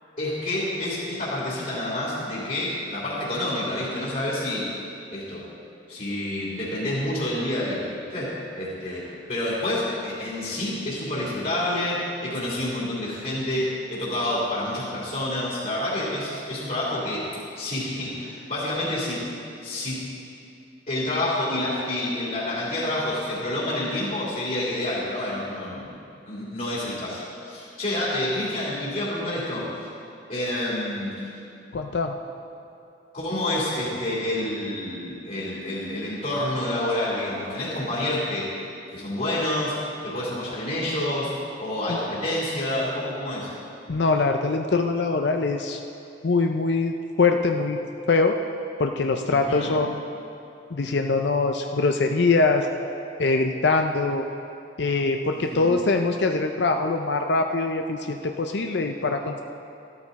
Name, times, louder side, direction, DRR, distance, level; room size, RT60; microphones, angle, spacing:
voice 1, 0.2-4.7 5.1-5.5 5.9-17.3 17.6-19.2 19.6-20.0 20.9-25.9 26.3-29.7 30.3-31.2 33.1-38.5 38.9-39.8 40.0-41.3 41.6-43.5 49.3-49.7 55.5-55.7, left 1 dB, 45° left, -7 dB, 3.1 m, -28 dB
voice 2, 31.7-32.1 41.9-42.0 43.9-45.8 46.2-47.8 48.1-48.4 48.8-50.0 50.7-52.7 53.2-54.2 54.8-59.4, left 3 dB, 65° left, 5 dB, 0.6 m, -23 dB
13.5 x 13.0 x 4.1 m, 2.7 s
head